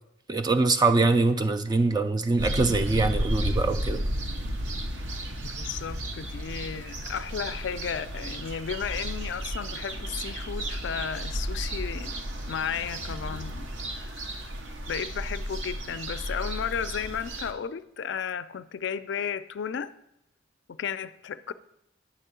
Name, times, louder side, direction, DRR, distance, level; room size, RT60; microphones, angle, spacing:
voice 1, 0.3-4.0, right 3 dB, 20° right, 8 dB, 0.3 m, -23 dB
sound 1, 2.4-17.5, equal, 70° right, 0.8 m, -33 dB
voice 2, 5.4-12.2 12.5-13.7 13.9-14.4 14.9-19.9 20.7-21.5, left 7 dB, 65° left, 13 dB, 0.4 m, -34 dB
9.3 x 3.6 x 6.8 m, 0.82 s
head